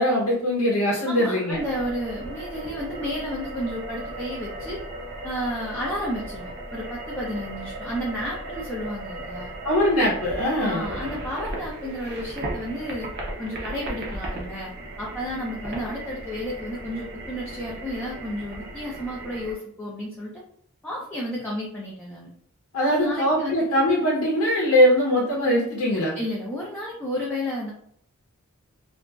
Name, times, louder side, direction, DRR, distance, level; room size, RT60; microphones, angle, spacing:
voice 1, 0.0-1.6 9.6-10.9 22.7-26.1, equal, 80° left, -4 dB, 0.8 m, -21 dB
voice 2, 1.1-4.8 5.2-9.5 10.6-13.1 13.4-14.7 15.0-20.4 20.8-22.3 22.8-23.6 26.1-27.7, equal, 5° left, -5 dB, 0.4 m, -32 dB
sound 1, 1.5-19.5, right 1 dB, 45° right, 0.6 m, -36 dB
2.8 x 2.4 x 2.3 m, 0.65 s
head